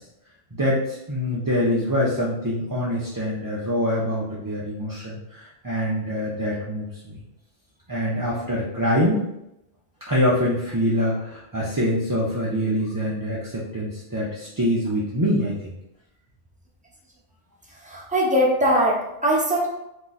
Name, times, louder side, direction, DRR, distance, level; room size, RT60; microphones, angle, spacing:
voice 1, 0.5-7.2 7.9-9.2 10.1-15.7, equal, 25° right, -6 dB, 0.4 m, -25 dB
voice 2, 17.8-19.7, equal, 5° right, -5 dB, 0.8 m, -21 dB
3.6 x 2.8 x 4.0 m, 0.86 s
omnidirectional pair, 1.2 m